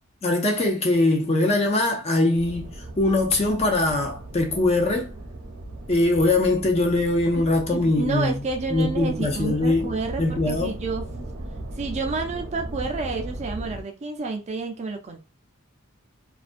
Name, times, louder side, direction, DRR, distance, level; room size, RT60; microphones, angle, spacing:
voice 1, 0.2-5.1 5.9-8.4 8.7-10.7, left 2 dB, 30° left, 0.5 m, -22 dB
sound 1, 2.3-13.8, right 1 dB, 80° right, 0.8 m, -37 dB
voice 2, 7.7-11.3 11.8-15.2, right 3 dB, 30° right, 0.4 m, -30 dB
2.4 x 2.2 x 2.4 m
head